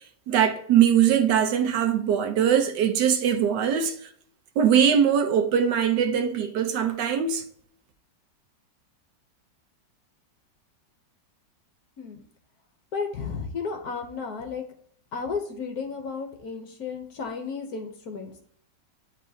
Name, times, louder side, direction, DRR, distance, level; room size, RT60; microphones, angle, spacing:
voice 1, 0.3-3.9 4.6-7.4, right 8 dB, 75° right, 1.4 m, -21 dB
voice 2, 12.9-14.6 15.1-18.5, left 5 dB, 60° left, 1.3 m, -33 dB
9.9 x 4.0 x 2.8 m
omnidirectional pair, 1.9 m